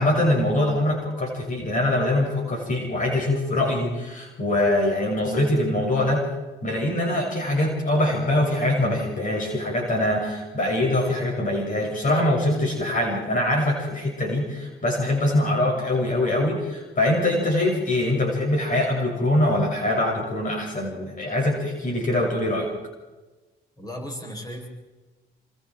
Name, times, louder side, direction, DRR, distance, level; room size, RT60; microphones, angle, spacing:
voice 1, 0.0-6.2 6.6-22.7, left 1 dB, 40° left, 0 dB, 6.4 m, -23 dB
voice 2, 23.8-24.7, equal, 20° left, 0 dB, 7.7 m, -35 dB
28.0 x 25.5 x 4.6 m, 1.2 s
cardioid pair, 90°, 20 cm